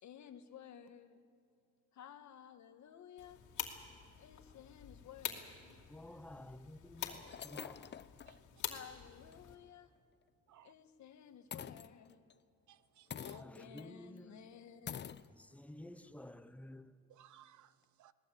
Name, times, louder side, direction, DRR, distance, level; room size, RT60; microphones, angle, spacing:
voice 1, 0.0-1.2 1.9-3.4 4.2-5.8 8.6-9.9 10.6-12.2 13.2-15.3, left 9 dB, 70° left, 1.5 m, -55 dB
sound 1, 3.2-9.6, left 10 dB, 85° left, 2.5 m, -47 dB
voice 2, 5.9-7.2 7.5-7.8 13.4-14.3 15.5-16.8, left 1 dB, 5° left, 0.9 m, -51 dB
sound 2, 6.4-6.5 7.0-8.4 8.8-8.9 9.3-9.4 11.5-12.3 13.1-13.9 14.2-14.3 14.9-15.3, left 8 dB, 35° left, 0.6 m, -47 dB
voice 3, 12.7-13.4 17.1-18.1, right 12 dB, 70° right, 0.9 m, -62 dB
21.5 x 18.5 x 8.4 m
cardioid pair, 90°, 30 cm